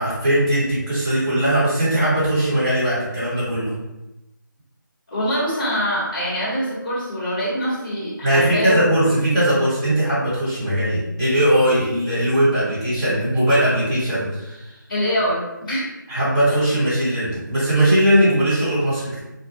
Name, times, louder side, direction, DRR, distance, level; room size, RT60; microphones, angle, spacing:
voice 1, 0.0-3.7 8.2-14.7 16.1-19.2, right 1 dB, 15° right, -13 dB, 1.1 m, -19 dB
voice 2, 5.1-8.8 14.9-15.9, equal, 25° left, -13 dB, 0.8 m, -24 dB
2.5 x 2.2 x 2.6 m, 0.96 s
figure-of-eight pair, 160°, 11 cm